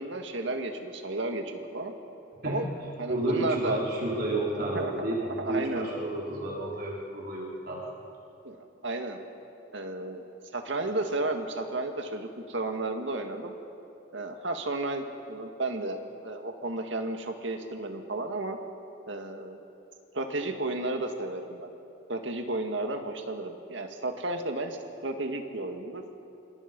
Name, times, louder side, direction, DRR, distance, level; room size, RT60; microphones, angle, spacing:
voice 1, 0.0-1.9 2.4-2.7 3.0-3.8 4.7-4.9 5.2-5.9 8.4-9.2 9.7-10.2 10.5-13.5 14.1-18.6 19.1-19.6 20.1-21.7 22.1-26.0, right 2 dB, 65° right, 4 dB, 2.0 m, -33 dB
voice 2, 3.1-7.8, right 1 dB, 50° right, -4 dB, 4.5 m, -31 dB
26.5 x 25.5 x 5.4 m, 2.8 s
head